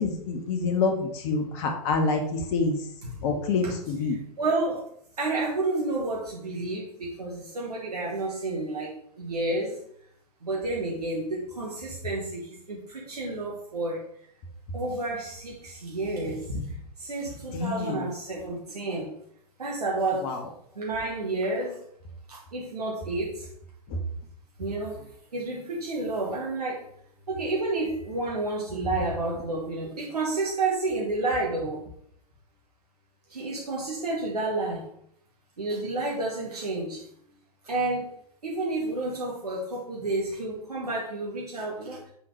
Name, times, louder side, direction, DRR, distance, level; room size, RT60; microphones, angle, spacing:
voice 1, 0.0-2.8 3.2-4.1 17.5-17.9 20.2-20.4, left 4 dB, 45° left, 4 dB, 1.2 m, -27 dB
voice 2, 3.0-3.4 3.6-3.7 4.1-4.8 5.2-9.8 10.4-14.0 14.7-19.1 19.6-20.4 20.7-21.8 22.3-23.5 24.6-25.0 25.3-26.9 27.3-31.8 33.3-34.9 35.6-37.0 37.6-38.1 38.4-42.0, right 2 dB, 80° right, -3 dB, 1.3 m, -30 dB
5.7 x 4.0 x 4.8 m, 0.67 s
figure-of-eight pair, 95°, 20 cm